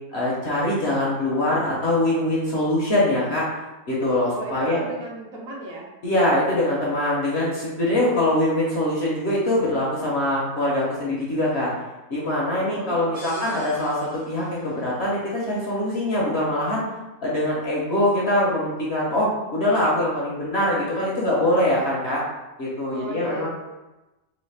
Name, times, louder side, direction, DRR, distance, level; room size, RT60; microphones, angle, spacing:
voice 1, 0.1-3.5 3.9-4.8 6.0-11.7 12.1-16.8 17.2-22.2 22.6-23.5, left 1 dB, 50° left, -5 dB, 0.9 m, -23 dB
voice 2, 4.3-5.9 12.6-13.7 22.9-23.5, right 2 dB, 65° right, -2 dB, 1.0 m, -35 dB
sound 1, 13.1-14.9, equal, 15° right, 0.7 m, -44 dB
3.1 x 3.0 x 3.3 m, 1.0 s
omnidirectional pair, 1.6 m